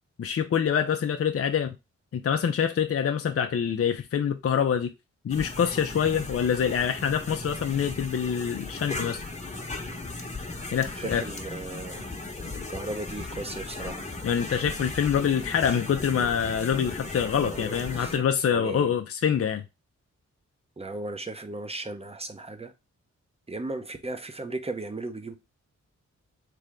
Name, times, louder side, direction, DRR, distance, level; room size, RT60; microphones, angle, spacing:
voice 1, 0.2-1.8 2.1-4.9 5.2-9.2 10.7-11.2 14.2-19.6, left 8 dB, 50° left, 0.6 m, -25 dB
sound 1, 5.3-18.2, left 2 dB, 25° left, 1.1 m, -37 dB
voice 2, 11.0-12.0 12.7-14.0 17.2-18.9 20.8-22.7 23.5-25.3, right 2 dB, 20° right, 0.9 m, -36 dB
3.6 x 3.3 x 3.5 m
cardioid pair, 45°, 31 cm